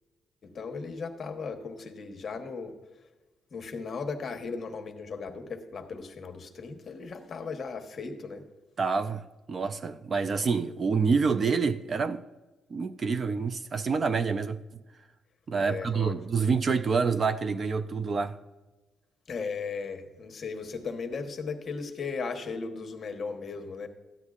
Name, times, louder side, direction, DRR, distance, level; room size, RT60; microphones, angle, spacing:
voice 1, 0.4-2.8 3.5-8.4 15.6-16.2 19.3-23.9, left 4 dB, 40° left, 1.1 m, -36 dB
voice 2, 8.8-12.2 12.7-14.6 15.5-18.4, right 5 dB, 35° right, 0.4 m, -27 dB
13.5 x 9.7 x 2.4 m
cardioid pair, 145°, 0 cm